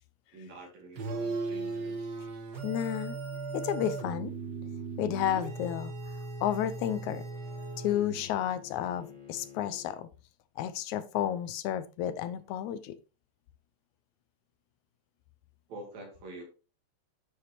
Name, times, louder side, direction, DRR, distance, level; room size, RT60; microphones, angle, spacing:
voice 1, 0.3-2.2 15.7-16.4, right 2 dB, 70° right, 3.8 m, -47 dB
sound 1, 1.0-8.4, right 3 dB, 45° right, 1.4 m, -37 dB
voice 2, 2.6-3.2 3.5-4.3 5.0-6.1 6.4-7.2 7.8-10.1 10.6-13.0, left 11 dB, 80° left, 2.1 m, -32 dB
Bowed string instrument, 6.0-10.0, left 8 dB, 20° left, 1.5 m, -53 dB
9.6 x 7.1 x 2.9 m
omnidirectional pair, 3.4 m